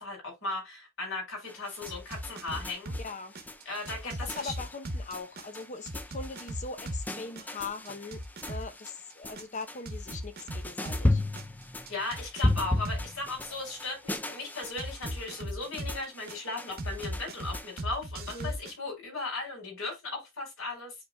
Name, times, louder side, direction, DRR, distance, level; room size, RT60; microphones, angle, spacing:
voice 1, 0.0-3.0 3.6-4.5 11.9-20.9, left 3 dB, 65° left, 4.8 m, -37 dB
sound 1, 1.5-17.8, left 1 dB, 10° left, 0.4 m, -36 dB
sound 2, 1.9-3.0 3.3-7.1 7.4-11.0 11.4-13.1 14.8-16.4 16.8-18.7, equal, 45° right, 1.2 m, -37 dB
voice 2, 3.0-3.3 4.0-8.2 8.5-11.2 18.3-18.5, left 4 dB, 35° left, 0.8 m, -41 dB
9.7 x 4.2 x 2.3 m
head